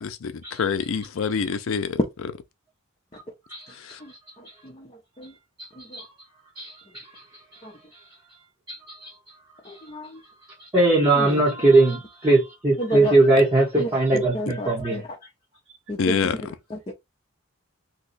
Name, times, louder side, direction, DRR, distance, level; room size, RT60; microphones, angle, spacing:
voice 1, 0.0-2.3 3.8-4.0 16.0-16.4, left 6 dB, 85° left, 0.5 m, -26 dB
voice 2, 5.6-6.1 6.6-6.7 8.7-9.1 10.7-15.0, right 2 dB, 20° right, 1.0 m, -20 dB
voice 3, 9.7-10.2 11.2-11.4 12.8-13.1 13.8-15.0 15.9-16.2 16.7-16.9, left 1 dB, 30° left, 0.6 m, -32 dB
2.8 x 2.2 x 3.9 m
head